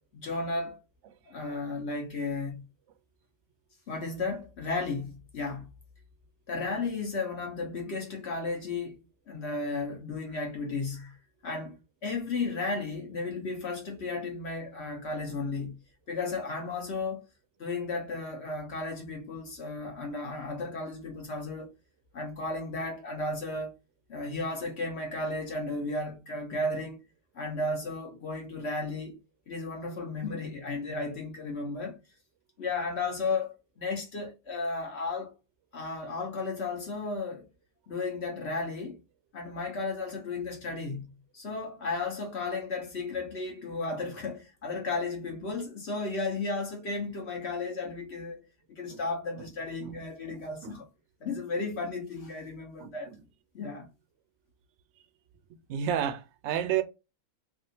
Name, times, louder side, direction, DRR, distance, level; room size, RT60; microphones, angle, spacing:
voice 1, 0.1-0.8 1.3-2.6 3.9-5.7 6.5-11.2 11.4-15.8 16.1-17.2 17.6-21.7 22.1-23.7 24.1-27.0 27.3-29.2 29.5-32.0 32.6-35.3 35.7-37.5 37.9-39.0 39.3-48.4 48.7-50.9 51.2-53.1 53.5-53.9, left 3 dB, 55° left, 0.9 m, -34 dB
voice 2, 55.7-56.8, right 10 dB, 65° right, 0.7 m, -30 dB
3.4 x 2.4 x 2.7 m
omnidirectional pair, 1.5 m